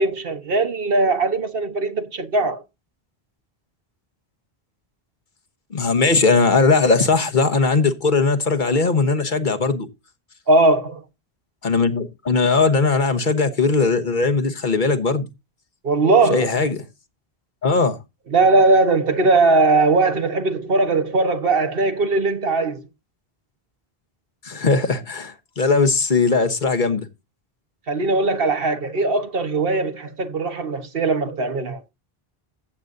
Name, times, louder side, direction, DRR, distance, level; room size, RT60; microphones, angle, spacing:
voice 1, 0.0-2.6 10.5-11.0 15.8-16.5 18.3-22.9 27.9-31.8, right 3 dB, 65° right, 1.4 m, -19 dB
voice 2, 5.7-9.9 11.6-15.3 16.3-16.8 17.6-18.0 24.4-27.0, left 4 dB, 50° left, 1.2 m, -19 dB
14.5 x 8.1 x 2.6 m
omnidirectional pair, 1.0 m